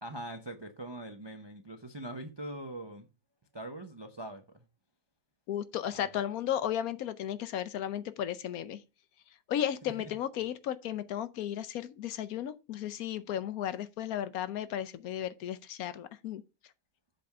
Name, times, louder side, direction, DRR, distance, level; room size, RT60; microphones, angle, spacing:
voice 1, 0.0-3.1 3.5-4.6 5.9-6.2 9.8-10.1, right 1 dB, 35° right, 0.4 m, -42 dB
voice 2, 5.5-8.8 9.5-16.4, left 10 dB, 70° left, 1.1 m, -34 dB
7.6 x 3.6 x 6.5 m
omnidirectional pair, 1.7 m